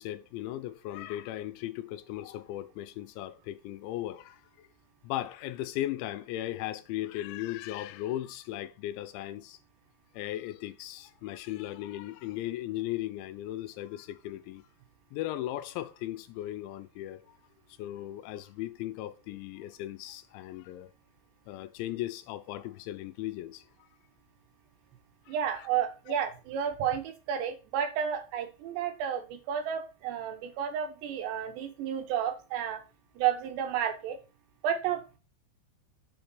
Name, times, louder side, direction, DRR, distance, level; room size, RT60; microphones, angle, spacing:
voice 1, 0.0-4.4 5.0-9.6 10.1-14.6 15.1-17.4 17.8-20.9 21.5-23.6 25.3-25.7, left 14 dB, 90° left, 2.9 m, -37 dB
voice 2, 25.3-32.8 33.2-34.2 34.6-35.2, right 9 dB, 75° right, 2.9 m, -31 dB
7.2 x 3.5 x 5.9 m
omnidirectional pair, 5.2 m